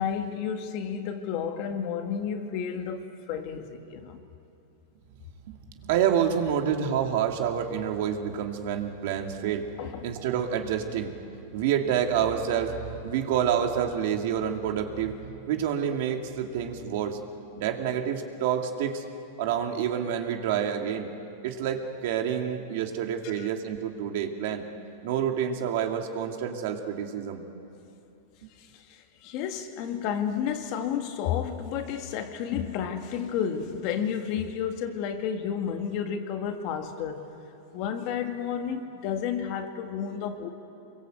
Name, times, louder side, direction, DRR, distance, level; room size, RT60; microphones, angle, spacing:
voice 1, 0.0-4.2 9.8-10.1 23.2-23.5 28.6-37.2 37.7-40.5, left 8 dB, 45° left, 5 dB, 2.0 m, -31 dB
voice 2, 5.8-9.7 10.0-11.1 11.5-12.8 13.0-17.2 17.6-19.0 19.4-21.1 21.4-24.6 25.0-27.4, right 8 dB, 60° right, 3 dB, 2.5 m, -28 dB
25.5 x 23.0 x 8.0 m, 2.8 s
supercardioid pair, 150°, 0 cm